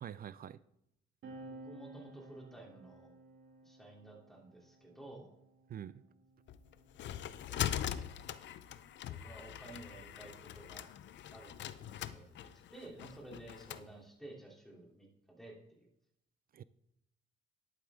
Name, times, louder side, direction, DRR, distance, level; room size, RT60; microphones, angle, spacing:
voice 1, 0.0-0.6 5.7-6.0 16.5-16.6, right 10 dB, 45° right, 0.4 m, -45 dB
sound 1, 1.2-8.1 9.1-11.0, right 2 dB, 75° right, 2.5 m, -56 dB
voice 2, 1.5-3.1 3.6-5.3 7.5-8.0 9.0-10.9 11.3-15.9, right 2 dB, ahead, 3.2 m, -53 dB
sound 2, 6.5-13.9, left 11 dB, 65° left, 0.6 m, -42 dB
11.0 x 8.7 x 3.7 m
cardioid pair, 90°, 20 cm